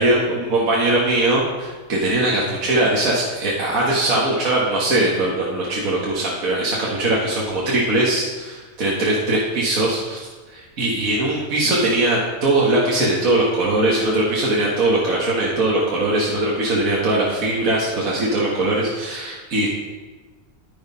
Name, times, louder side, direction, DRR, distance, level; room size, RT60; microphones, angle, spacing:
voice 1, 0.0-19.7, right 2 dB, 65° right, -4 dB, 2.0 m, -20 dB
10.5 x 9.5 x 5.5 m, 1.3 s
omnidirectional pair, 1.6 m